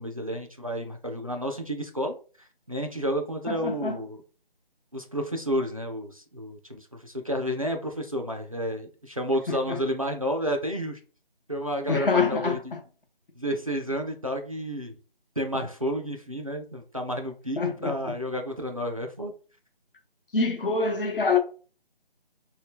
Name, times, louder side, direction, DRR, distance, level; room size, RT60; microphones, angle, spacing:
voice 1, 0.0-2.1 2.7-4.2 4.9-11.0 11.5-12.7 13.4-15.0 15.4-19.3, equal, 40° right, 0.4 m, -31 dB
voice 2, 3.5-4.0 9.5-9.8 11.9-12.8 17.6-18.1 20.3-21.4, left 4 dB, 60° left, 0.8 m, -26 dB
2.7 x 2.2 x 3.5 m
figure-of-eight pair, 170°, 30 cm